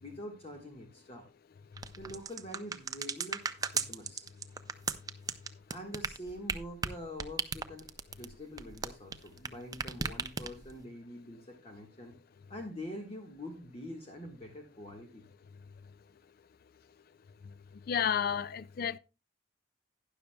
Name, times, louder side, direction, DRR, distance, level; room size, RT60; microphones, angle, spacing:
voice 1, 0.0-1.3 2.0-3.4 3.7-4.3 5.7-7.9 8.2-12.1 12.5-15.2, left 1 dB, 35° left, 1.4 m, -45 dB
sound 1, 1.8-9.5 9.7-10.8, right 5 dB, 20° right, 0.5 m, -36 dB
voice 2, 17.9-19.0, left 8 dB, 55° left, 0.4 m, -31 dB
12.0 x 10.5 x 2.2 m
head